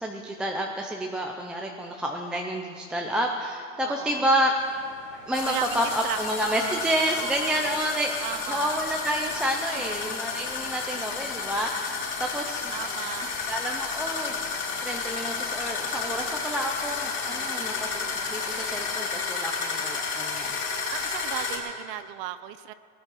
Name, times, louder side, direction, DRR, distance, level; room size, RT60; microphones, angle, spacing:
voice 1, 0.0-4.6 5.3-8.2 8.5-12.7 13.5-14.4 14.8-18.0 18.3-20.6, equal, 5° right, 0 dB, 0.3 m, -29 dB
voice 2, 3.8-4.3 5.4-7.8 8.2-8.8 9.7-10.1 12.7-13.4 20.9-22.7, right 14 dB, 45° right, 14 dB, 0.6 m, -36 dB
sound 1, 4.6-19.2, left 5 dB, 55° left, 2.6 m, -48 dB
sound 2, 5.3-21.6, left 5 dB, 30° left, 3.2 m, -32 dB
18.5 x 10.0 x 6.1 m, 2.3 s
supercardioid pair, 130°, 39 cm